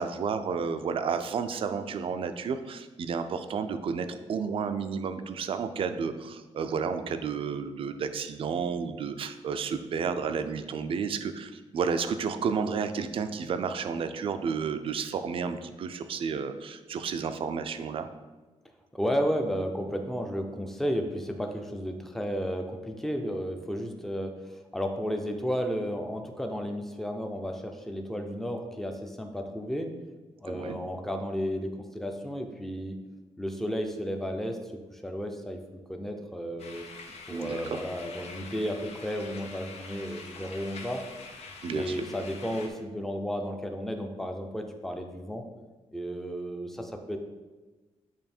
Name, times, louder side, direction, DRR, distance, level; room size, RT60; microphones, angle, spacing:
voice 1, 0.0-18.1 30.5-30.8 37.3-37.8 41.6-42.0, right 6 dB, 55° right, 9 dB, 0.5 m, -31 dB
voice 2, 18.9-29.9 30.4-33.0 33.4-36.9 37.3-41.0 41.7-45.4 45.9-47.2, equal, 5° left, 4 dB, 0.6 m, -33 dB
sound 1, 36.6-42.7, left 4 dB, 75° left, 0.8 m, -45 dB
9.0 x 3.1 x 4.3 m, 1.2 s
wide cardioid pair, 160°, 11 cm